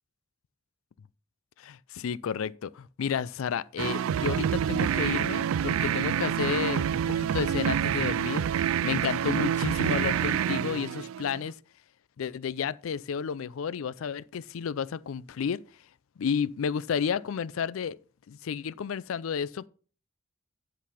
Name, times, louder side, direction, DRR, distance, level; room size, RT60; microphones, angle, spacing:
voice 1, 1.6-11.5 12.2-15.6 16.2-18.0 18.3-19.7, left 7 dB, 80° left, 0.4 m, -32 dB
sound 1, 3.8-11.5, right 9 dB, 80° right, 0.3 m, -27 dB
10.0 x 4.0 x 5.6 m
head